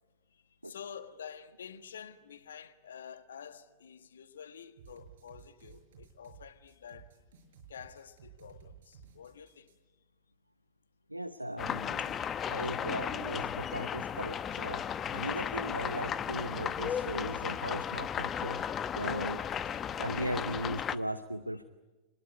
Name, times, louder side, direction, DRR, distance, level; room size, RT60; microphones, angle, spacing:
voice 1, 0.3-7.1 7.7-9.7, left 7 dB, 65° left, 1.4 m, -49 dB
sound 1, 4.8-9.7, right 7 dB, 60° right, 6.1 m, -55 dB
voice 2, 11.1-14.8 15.1-18.6 18.9-21.6, right 1 dB, 85° right, 0.8 m, -38 dB
sound 2, 11.6-21.0, left 8 dB, 25° left, 0.9 m, -35 dB
29.0 x 20.5 x 9.5 m
figure-of-eight pair, 90°, 0 cm